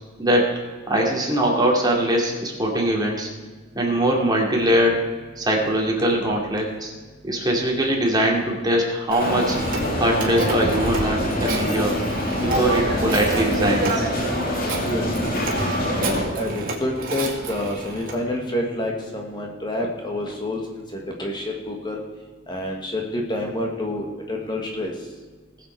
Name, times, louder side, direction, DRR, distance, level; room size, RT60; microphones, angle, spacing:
voice 1, 0.2-0.5 0.9-3.3 3.7-5.1 5.4-6.9 7.2-9.6 9.9-12.0 12.4-14.1, right 1 dB, 20° right, -1 dB, 2.5 m, -22 dB
Telephone, 9.1-18.2, right 2 dB, 45° right, 2.4 m, -29 dB
sound 1, 9.2-16.2, left 1 dB, 50° left, 2.2 m, -25 dB
voice 2, 15.9-22.0 22.5-24.9, left 1 dB, 25° left, 0 dB, 1.6 m, -28 dB
19.5 x 7.6 x 4.5 m, 1.4 s
head